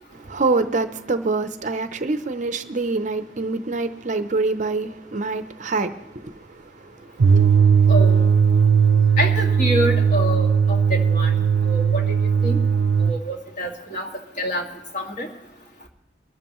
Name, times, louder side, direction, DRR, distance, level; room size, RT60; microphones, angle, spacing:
voice 1, 0.3-6.3 7.4-7.5, right 3 dB, 40° right, 0.6 m, -25 dB
sound 1, 7.2-13.2, right 6 dB, 90° right, 0.5 m, -17 dB
voice 2, 7.9-8.2 9.2-11.3 11.6-12.0 12.4-12.6 13.1-14.1 14.4-14.6 14.9-15.3, equal, 40° left, 2.1 m, -26 dB
24.0 x 12.5 x 3.1 m
head